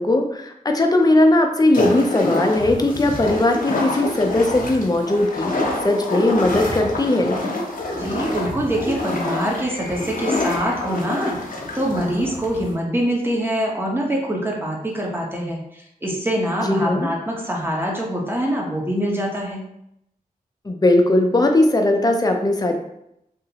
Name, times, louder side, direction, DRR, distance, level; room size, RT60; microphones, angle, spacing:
voice 1, 0.0-5.5 5.8-7.4 16.6-17.1 20.6-22.8, left 2 dB, 25° left, 4 dB, 0.5 m, -18 dB
sound 1, 1.7-12.8, left 2 dB, 65° left, 0.7 m, -27 dB
voice 2, 7.9-11.3 11.7-19.6, equal, 15° right, -2 dB, 0.9 m, -24 dB
2.8 x 2.6 x 2.8 m, 0.80 s
cardioid pair, 45°, 15 cm